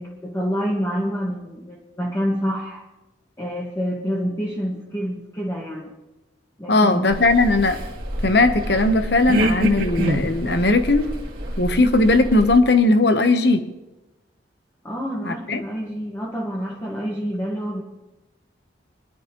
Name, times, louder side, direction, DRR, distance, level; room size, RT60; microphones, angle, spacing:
voice 1, 0.0-2.8 3.4-5.9 6.6-7.1 14.8-17.8, equal, 15° left, -5 dB, 1.6 m, -27 dB
voice 2, 6.7-7.8 8.2-11.1 11.6-13.7 15.2-15.6, left 2 dB, 60° left, 9 dB, 1.0 m, -18 dB
sound 1, 7.1-12.6, right 1 dB, 50° right, 2.2 m, -26 dB
22.5 x 11.5 x 3.1 m, 1.0 s
head